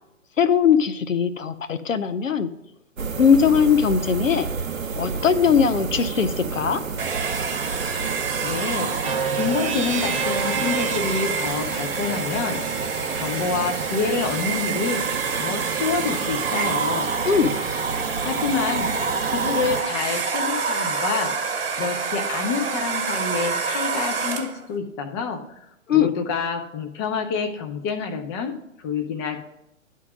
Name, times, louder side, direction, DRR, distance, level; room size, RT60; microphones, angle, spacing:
voice 1, 0.4-2.5 3.2-4.5 5.0-6.8 17.3-17.6 25.9-26.1, left 7 dB, 75° left, 11 dB, 0.7 m, -20 dB
sound 1, 3.0-19.8, right 5 dB, 80° right, 0.8 m, -31 dB
Domestic sounds home sounds, 7.0-24.7, right 5 dB, 45° right, 1.1 m, -27 dB
voice 2, 8.4-8.9 9.4-12.6 13.1-15.0 15.3-17.1 18.2-18.9 19.3-21.3 21.7-25.4 25.9-29.4, left 5 dB, 20° left, 5 dB, 0.7 m, -27 dB
sound 2, 9.0-16.9, right 6 dB, 30° right, 0.4 m, -33 dB
10.5 x 3.8 x 6.1 m, 0.81 s
figure-of-eight pair, 125°, 39 cm